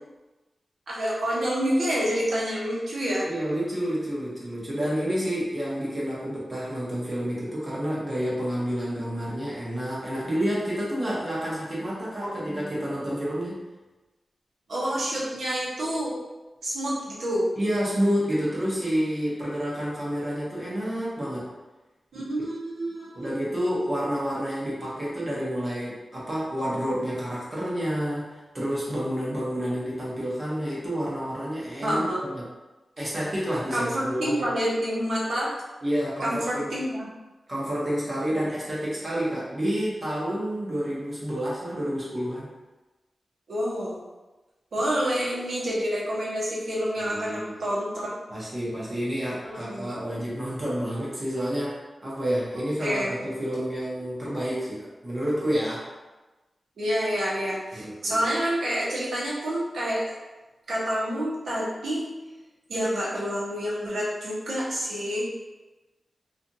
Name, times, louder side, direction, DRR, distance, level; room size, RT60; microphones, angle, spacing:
voice 1, 0.9-3.2 12.2-12.8 14.7-16.1 16.6-17.5 22.1-23.3 31.8-32.2 33.7-35.5 36.2-37.0 43.5-44.0 44.7-48.1 49.4-49.9 52.8-53.1 56.8-60.2 60.7-62.1 62.7-65.2, equal, 90° right, -6 dB, 0.9 m, -28 dB
voice 2, 3.3-13.6 17.6-21.5 23.1-32.4 33.0-34.5 35.8-36.7 37.5-42.5 47.0-47.5 48.3-55.9 57.7-58.3, equal, 30° right, -7 dB, 0.8 m, -29 dB
2.7 x 2.4 x 2.6 m, 1.1 s
wide cardioid pair, 140°, 0 cm